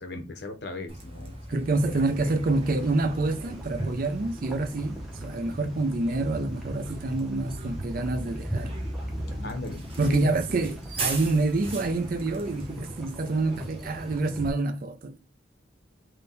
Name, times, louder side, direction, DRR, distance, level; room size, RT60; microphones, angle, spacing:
voice 1, 0.0-2.3 9.4-10.3, left 2 dB, 65° left, 0.7 m, -39 dB
Bus, 0.9-14.2, right 1 dB, 30° right, 0.9 m, -39 dB
voice 2, 1.5-8.7 10.0-15.2, right 2 dB, 50° right, 0.5 m, -27 dB
sound 1, 1.7-14.5, right 1 dB, ahead, 0.7 m, -39 dB
3.7 x 2.2 x 3.9 m
head